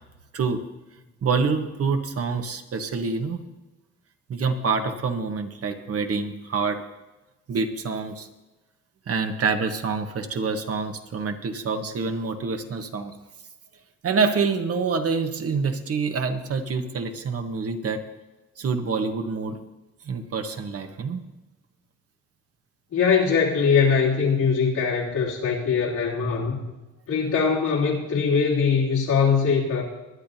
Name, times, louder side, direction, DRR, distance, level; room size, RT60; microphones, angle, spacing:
voice 1, 1.2-3.4 4.3-6.8 7.5-8.3 9.1-13.2 14.0-18.0 18.6-19.6 20.0-21.3, right 4 dB, 50° right, 6 dB, 1.3 m, -26 dB
voice 2, 22.9-26.6 27.1-29.8, left 6 dB, 80° left, -4 dB, 3.3 m, -22 dB
21.0 x 10.5 x 2.8 m, 1.1 s
cardioid pair, 90°, 30 cm